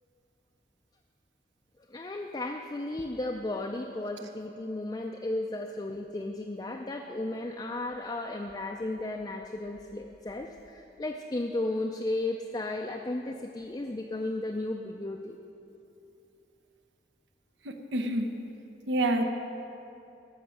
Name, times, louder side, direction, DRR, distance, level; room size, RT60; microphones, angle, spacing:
voice 1, 1.9-15.4, left 2 dB, 20° left, 2 dB, 0.4 m, -34 dB
voice 2, 17.6-18.3 18.9-19.2, right 1 dB, 80° right, 4 dB, 0.8 m, -27 dB
14.0 x 5.8 x 6.4 m, 2.7 s
head